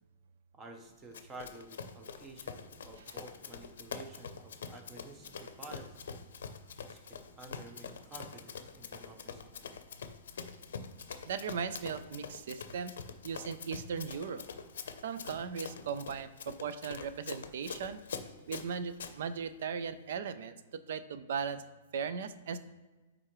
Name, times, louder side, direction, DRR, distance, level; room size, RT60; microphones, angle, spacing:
voice 1, 0.5-6.0 6.8-9.5, right 2 dB, 15° right, 5 dB, 0.7 m, -51 dB
Run, 1.1-19.1, left 6 dB, 80° left, 0.6 m, -45 dB
voice 2, 11.3-13.0 13.2-14.4 15.0-18.0 18.5-21.6 21.9-22.6, right 6 dB, 65° right, 13 dB, 0.4 m, -38 dB
9.4 x 3.7 x 3.1 m, 1.2 s
hypercardioid pair, 160°, 0 cm